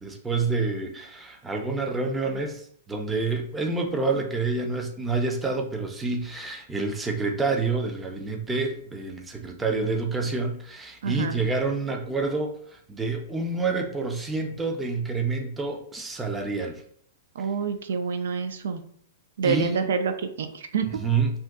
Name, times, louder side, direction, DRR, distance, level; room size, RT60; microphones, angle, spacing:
voice 1, 0.0-16.8 19.4-19.9 21.0-21.3, right 3 dB, 10° right, 3 dB, 0.3 m, -28 dB
voice 2, 11.0-11.4 17.3-18.8 19.4-21.0, right 5 dB, 85° right, 9 dB, 0.4 m, -27 dB
2.6 x 2.2 x 3.5 m, 0.62 s
supercardioid pair, 165°, 0 cm